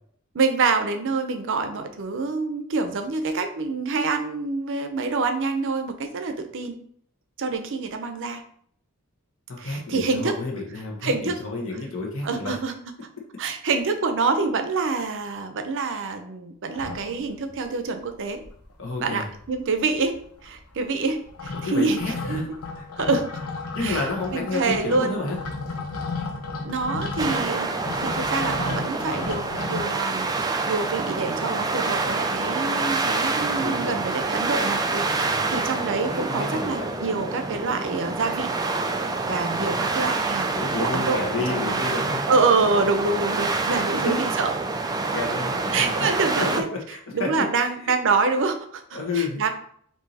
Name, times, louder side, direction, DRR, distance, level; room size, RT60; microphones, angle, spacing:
voice 1, 0.3-6.8 7.4-8.4 9.6-10.4 11.0-11.4 12.2-12.9 13.4-18.4 19.0-20.1 20.4-22.0 22.3-22.4 23.0-23.3 23.8-25.2 26.6-27.7 27.9-38.5 39.2-40.5 40.8-41.8 42.3-44.5 45.7-46.7 47.1-49.5, right 4 dB, 60° right, 7 dB, 0.6 m, -26 dB
voice 2, 9.5-12.6 18.8-19.3 21.6-22.5 23.7-25.4 33.6-34.1 35.1-35.6 36.1-36.9 39.6-39.9 40.4-42.3 43.8-44.2 44.9-46.1 46.4-47.9 48.9-49.4, left 3 dB, 60° left, -1 dB, 1.2 m, -31 dB
sound 1, 16.7-17.6 18.0-18.1 18.3-19.0 19.2-29.8, left 3 dB, 80° left, 0.8 m, -34 dB
sound 2, 27.2-46.6, right 3 dB, 15° right, 0.3 m, -27 dB
4.7 x 2.7 x 4.0 m, 0.63 s
head